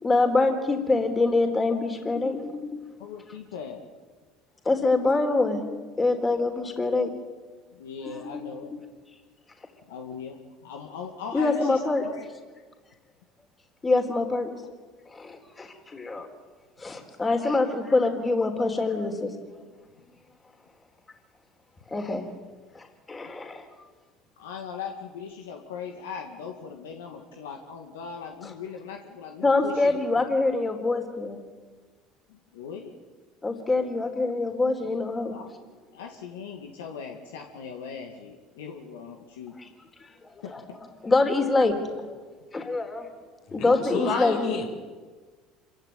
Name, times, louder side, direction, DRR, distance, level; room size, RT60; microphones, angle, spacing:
voice 1, 0.0-2.8 4.6-5.7 6.0-7.1 8.0-8.2 11.3-12.0 13.8-14.5 15.1-16.3 16.8-19.3 21.9-22.3 22.7-23.7 29.4-31.4 33.4-35.3 39.6-39.7 40.0-40.6 41.0-42.2 42.5-43.1 43.5-44.4, left 3 dB, 25° left, 4 dB, 3.9 m, -25 dB
voice 2, 3.0-3.9 7.7-8.7 9.9-12.3 24.4-30.0 32.3-32.9 35.3-35.5 35.9-39.6 40.4-40.8, left 6 dB, 90° left, 3 dB, 2.1 m, -39 dB
voice 3, 43.5-44.7, left 4 dB, 65° left, 2 dB, 6.0 m, -30 dB
27.0 x 16.0 x 9.3 m, 1.4 s
hypercardioid pair, 85°, 0 cm